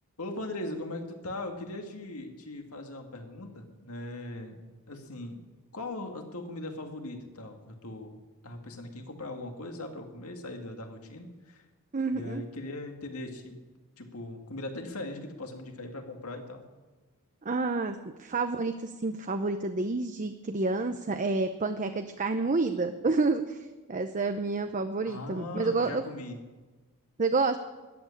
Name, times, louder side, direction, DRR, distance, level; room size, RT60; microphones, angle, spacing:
voice 1, 0.2-4.6 4.9-5.4 5.7-8.2 8.4-11.6 12.1-13.6 14.0-16.6 25.0-26.4, left 2 dB, 75° left, 4 dB, 2.1 m, -39 dB
voice 2, 11.9-12.4 17.4-23.6 23.9-26.0 27.2-27.6, right 3 dB, 35° right, 8 dB, 0.6 m, -29 dB
13.5 x 8.7 x 9.8 m, 1.3 s
head